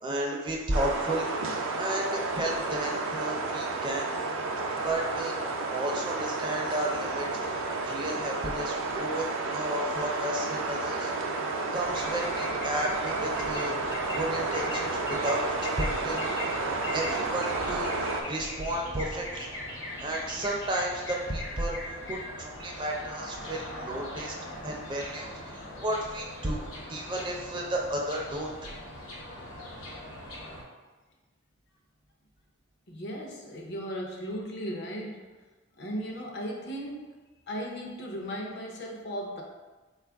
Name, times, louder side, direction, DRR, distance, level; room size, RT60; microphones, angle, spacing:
voice 1, 0.0-1.3 1.7-4.1 4.8-5.4 5.7-7.6 7.8-9.2 9.5-11.1 11.7-16.3 16.9-19.5 20.0-24.4 24.6-28.7, right 1 dB, 25° right, 0 dB, 0.4 m, -33 dB
sound 1, 0.7-18.2, right 3 dB, 80° right, 0.5 m, -31 dB
sound 2, 11.8-30.6, left 1 dB, 80° left, 0.9 m, -40 dB
voice 2, 32.9-35.3 35.8-37.1 37.5-39.4, equal, 55° left, 0 dB, 0.6 m, -36 dB
4.2 x 2.4 x 3.4 m, 1.2 s
head